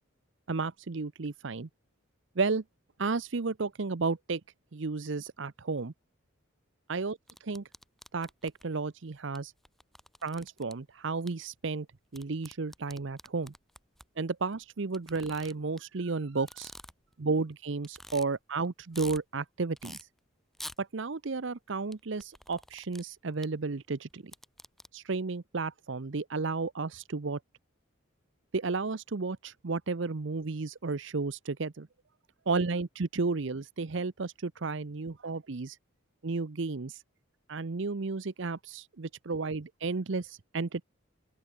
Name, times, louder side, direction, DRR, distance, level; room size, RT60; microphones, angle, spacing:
voice 1, 0.5-1.7 2.4-2.6 3.0-4.4 4.7-5.9 6.9-7.6 8.1-9.5 10.2-11.9 12.1-13.5 14.2-16.7 17.2-20.1 20.8-24.2 24.9-27.4 28.5-31.9 32.5-35.8 36.2-37.0 37.5-40.8, right 4 dB, 60° right, 0.7 m, -33 dB
sound 1, 7.3-8.7 9.4-9.5 9.7-10.7 11.3-11.4 12.1-14.1 14.9-15.8 16.4-17.1 17.5-17.6 17.8-18.2 18.6-19.2 19.8-20.0 20.5-20.8 21.9-23.0 23.4-23.5 24.1-24.9, equal, ahead, 3.1 m, -47 dB
open air
head